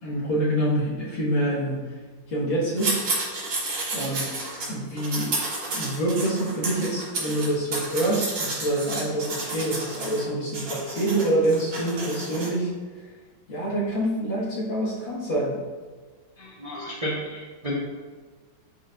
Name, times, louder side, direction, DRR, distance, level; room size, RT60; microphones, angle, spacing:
voice 1, 0.0-1.9 2.3-3.0 3.9-4.4 4.7-5.3 5.7-12.7 13.5-15.6, right 1 dB, 75° left, -7 dB, 2.5 m, -26 dB
sound 1, 2.8-4.7 5.0-10.3 10.5-12.5, right 2 dB, 90° right, 2.6 m, -31 dB
voice 2, 16.4-17.7, equal, 25° right, -6 dB, 0.8 m, -32 dB
10.0 x 4.5 x 2.6 m, 1.4 s
omnidirectional pair, 2.1 m